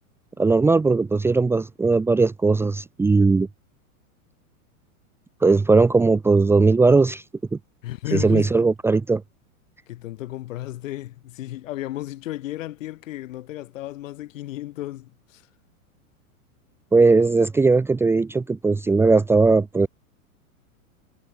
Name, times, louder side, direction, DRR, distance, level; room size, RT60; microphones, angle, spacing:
voice 1, 0.4-3.5 5.4-7.2 8.1-9.2 16.9-19.9, right 3 dB, 5° right, 1.1 m, -18 dB
voice 2, 7.8-8.5 9.9-15.4, left 15 dB, 60° left, 5.4 m, -33 dB
supercardioid pair, 155°, 43 cm